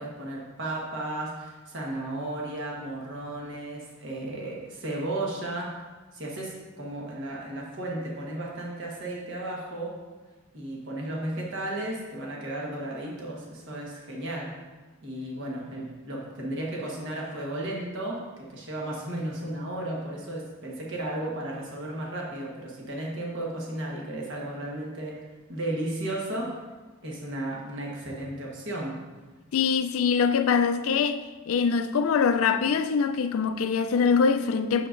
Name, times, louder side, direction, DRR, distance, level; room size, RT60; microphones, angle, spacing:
voice 1, 0.0-5.8 6.1-10.0 10.5-14.5 15.0-25.2 25.5-26.6 27.0-29.0, right 1 dB, 60° right, 1.2 m, -34 dB
voice 2, 29.5-34.9, left 6 dB, 85° left, 0.4 m, -23 dB
7.5 x 6.7 x 2.5 m
head